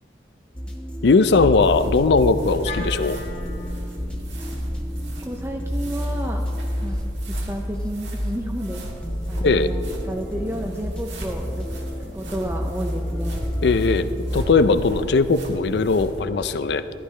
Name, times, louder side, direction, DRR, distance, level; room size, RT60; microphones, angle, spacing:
sound 1, 0.5-14.4, equal, 5° left, 0.9 m, -30 dB
voice 1, 1.0-3.2 9.4-9.7 13.6-16.8, left 4 dB, 70° left, 12 dB, 0.5 m, -19 dB
sound 2, 1.2-16.2, equal, 85° right, 1.7 m, -36 dB
Wind instrument woodwind instrument, 2.6-6.9, left 2 dB, 35° left, 1.0 m, -40 dB
voice 2, 5.2-6.4 6.8-7.0 7.3-8.8 9.3-11.8 12.1-13.4, equal, 15° right, 2 dB, 0.5 m, -31 dB
14.0 x 11.5 x 3.3 m, 2.6 s
head